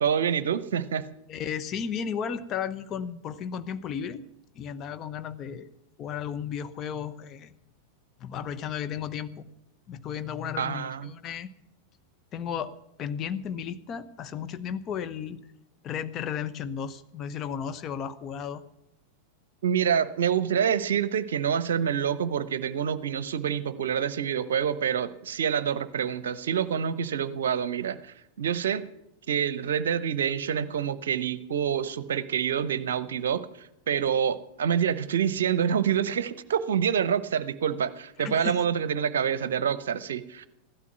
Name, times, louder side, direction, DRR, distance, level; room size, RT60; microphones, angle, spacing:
voice 1, 0.0-1.1 10.6-11.2 19.6-28.9 29.3-40.5, right 8 dB, 60° right, 15 dB, 0.8 m, -27 dB
voice 2, 1.3-4.3 4.5-5.7 6.0-7.5 8.2-9.4 9.9-11.5 12.3-15.4 15.8-18.6 38.2-38.6, left 8 dB, 30° left, 11 dB, 0.9 m, -34 dB
15.5 x 12.0 x 6.1 m, 0.85 s
figure-of-eight pair, 90°, 0 cm